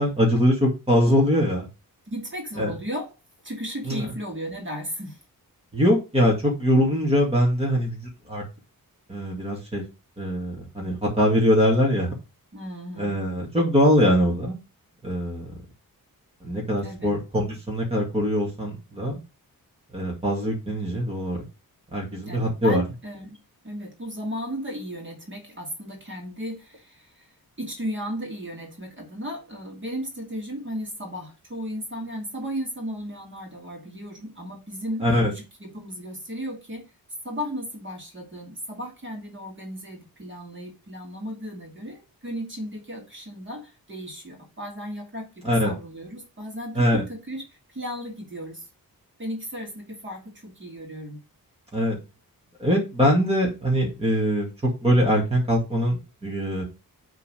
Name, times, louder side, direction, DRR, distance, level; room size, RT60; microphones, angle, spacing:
voice 1, 0.0-1.7 2.6-2.7 3.9-4.1 5.7-8.4 9.1-9.8 10.2-12.1 13.0-14.6 15.0-15.5 16.4-19.2 19.9-21.4 21.9-22.8 35.0-35.3 45.4-45.7 46.8-47.0 51.7-52.0 52.6-56.6, equal, 15° right, -2 dB, 2.1 m, -22 dB
voice 2, 2.1-3.2 3.4-5.2 12.5-13.2 16.8-17.1 22.2-23.4 23.6-36.9 37.2-48.7 49.2-51.2, equal, 30° right, 1 dB, 2.4 m, -35 dB
6.9 x 3.9 x 6.2 m, 0.28 s
wide cardioid pair, 170°, 37 cm